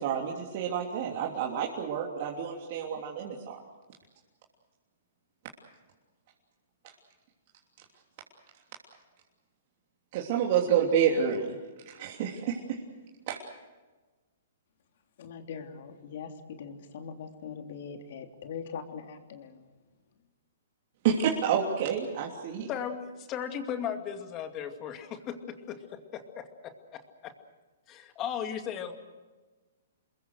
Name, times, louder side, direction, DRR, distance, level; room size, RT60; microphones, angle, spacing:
voice 1, 0.0-3.6 10.1-11.6 11.8-12.8 13.3-13.4 21.0-22.7, right 8 dB, 45° right, -1 dB, 3.2 m, -29 dB
voice 2, 15.2-19.7, left 6 dB, 60° left, 5 dB, 3.3 m, -42 dB
voice 3, 22.7-27.3 27.9-28.9, left 8 dB, 25° left, 6 dB, 2.4 m, -37 dB
28.0 x 22.0 x 6.6 m, 1.2 s
hypercardioid pair, 145°, 0 cm